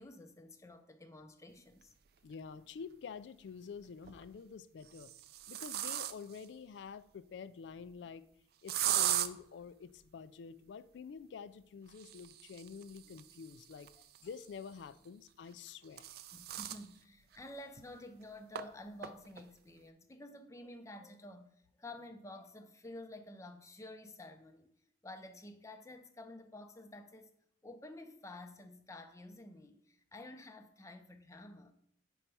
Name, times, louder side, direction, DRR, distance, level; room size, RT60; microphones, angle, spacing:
voice 1, 0.0-1.9 16.3-21.5 21.8-24.7 25.0-27.3 27.6-31.7, left 1 dB, 20° left, 0.5 m, -51 dB
voice 2, 2.2-5.1 5.5-8.3 8.6-13.9 14.2-16.0, left 6 dB, 85° left, 0.3 m, -48 dB
sound 1, 2.3-2.4 3.8-4.3 4.9-6.4 8.7-9.3 11.9-14.5 15.5-16.9 17.3-17.4 17.8-17.9 18.5-18.6 19.0-19.4, right 12 dB, 60° right, 0.3 m, -38 dB
4.5 x 4.4 x 5.3 m
head